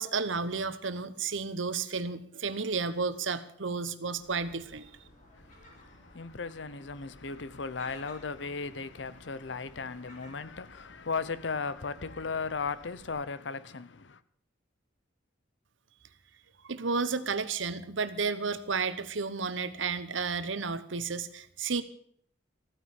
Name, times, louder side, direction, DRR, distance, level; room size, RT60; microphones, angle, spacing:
voice 1, 0.0-4.9 16.6-21.8, right 4 dB, 85° right, 1.1 m, -32 dB
Gull seagull, 4.2-13.1, left 1 dB, 40° left, 4.4 m, -56 dB
voice 2, 5.3-14.2, left 4 dB, 70° left, 0.8 m, -36 dB
14.5 x 9.6 x 7.5 m
head